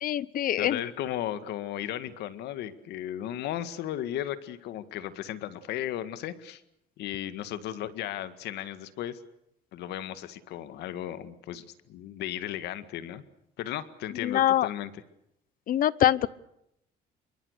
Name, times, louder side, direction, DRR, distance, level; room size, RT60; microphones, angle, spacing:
voice 1, 0.0-0.8 14.2-14.7 15.7-16.3, left 12 dB, 55° left, 21 dB, 0.9 m, -24 dB
voice 2, 0.6-6.6 7.0-9.2 9.7-13.2 13.6-14.9, left 12 dB, 80° left, 13 dB, 1.9 m, -35 dB
27.0 x 23.5 x 6.7 m, 0.79 s
cardioid pair, 110°, 17 cm